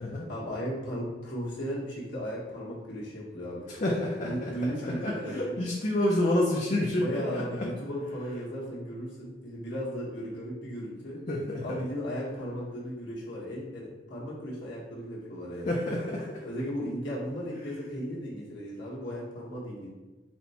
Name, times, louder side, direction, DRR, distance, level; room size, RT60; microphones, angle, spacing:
voice 1, 0.3-3.7 4.2-5.6 7.0-11.2 11.6-15.7 16.4-19.9, equal, 85° left, -7 dB, 1.4 m, -36 dB
voice 2, 3.7-4.5 4.8-7.4 11.3-11.6 15.7-16.3, left 1 dB, 40° left, -3 dB, 0.5 m, -28 dB
4.2 x 2.3 x 4.2 m, 1.2 s
head